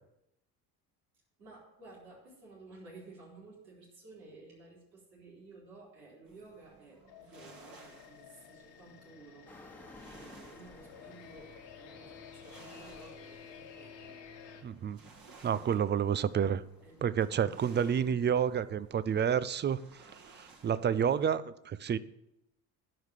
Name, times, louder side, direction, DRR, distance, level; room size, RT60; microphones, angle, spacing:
voice 1, 1.4-9.5 10.0-14.6 16.8-17.6, right 3 dB, 85° right, 4.7 m, -54 dB
sound 1, 6.3-21.3, right 4 dB, 45° right, 2.2 m, -59 dB
sound 2, 7.1-14.6, left 7 dB, 75° left, 1.8 m, -52 dB
sound 3, 9.5-18.7, left 2 dB, 5° left, 1.3 m, -58 dB
voice 2, 14.6-15.0 15.4-16.6 17.0-19.8 20.3-22.0, right 8 dB, 25° right, 0.4 m, -29 dB
11.5 x 4.9 x 7.4 m
hypercardioid pair, 65°, 49 cm